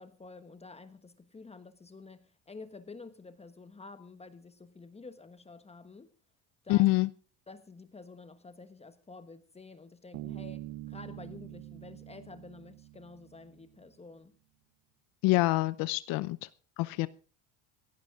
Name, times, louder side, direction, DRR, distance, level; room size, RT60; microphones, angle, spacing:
voice 1, 0.0-6.1 6.6-6.9 7.5-14.3, left 3 dB, 15° left, 1.2 m, -50 dB
voice 2, 6.7-7.1 15.2-16.4 16.8-17.1, left 20 dB, 65° left, 0.8 m, -26 dB
Bass guitar, 10.1-13.7, right 15 dB, 80° right, 1.0 m, -45 dB
16.5 x 16.0 x 3.7 m
supercardioid pair, 110°, 37 cm